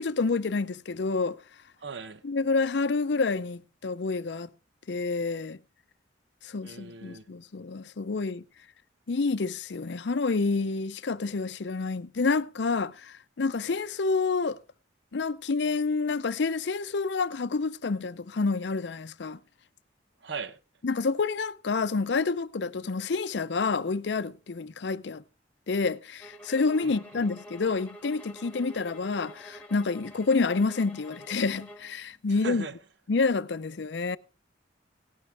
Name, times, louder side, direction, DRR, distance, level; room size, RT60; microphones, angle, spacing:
voice 1, 0.0-1.4 2.2-4.5 4.9-5.6 6.4-8.4 9.1-14.6 15.1-19.4 20.8-25.2 25.7-32.7 33.1-34.2, left 4 dB, 65° left, 0.6 m, -28 dB
voice 2, 1.8-2.2 6.6-7.3 20.2-20.6 26.8-27.3 32.3-32.8, right 4 dB, 70° right, 0.9 m, -39 dB
sound 1, 26.2-32.0, equal, 10° left, 1.6 m, -47 dB
17.5 x 11.0 x 3.4 m
head